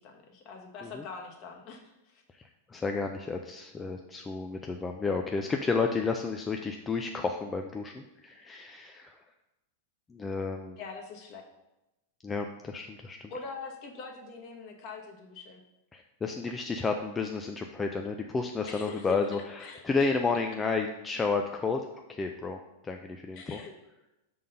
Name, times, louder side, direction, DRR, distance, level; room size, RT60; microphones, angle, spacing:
voice 1, 0.0-2.2 10.8-11.4 13.3-15.6 18.6-19.2 19.6-19.8 23.3-23.7, left 5 dB, 45° left, 1 dB, 1.1 m, -43 dB
voice 2, 2.3-9.2 10.1-10.8 12.2-13.3 15.9-23.6, left 4 dB, 15° left, 4 dB, 0.3 m, -32 dB
5.5 x 3.8 x 5.3 m, 0.97 s
hypercardioid pair, 130°, 0 cm